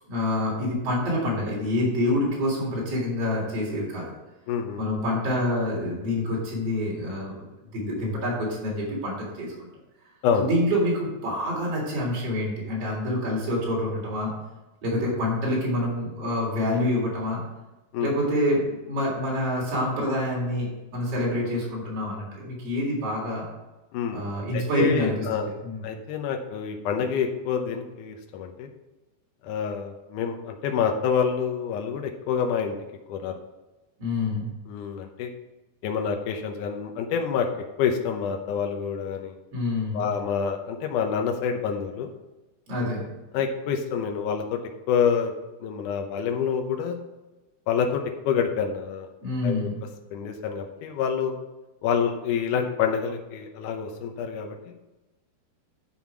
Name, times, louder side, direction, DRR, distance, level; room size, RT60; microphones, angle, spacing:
voice 1, 0.0-4.1 4.8-7.4 7.7-9.7 10.4-14.3 14.8-17.4 18.0-23.4 24.1-25.8 34.0-34.5 39.5-40.1 42.7-43.0 49.2-49.8, left 1 dB, 35° right, -4 dB, 4.1 m, -27 dB
voice 2, 4.5-4.8 10.2-10.5 17.9-18.1 23.9-24.2 24.5-25.5 25.8-28.7 29.4-32.8 33.1-33.4 34.7-35.3 35.8-37.5 37.8-39.3 39.9-42.1 43.3-44.6 44.9-45.3 45.6-47.0 47.7-49.1 49.4-49.7 50.1-51.3 51.8-54.7, left 7 dB, 90° left, 4 dB, 1.8 m, -27 dB
10.0 x 5.6 x 6.0 m, 1.1 s
omnidirectional pair, 4.8 m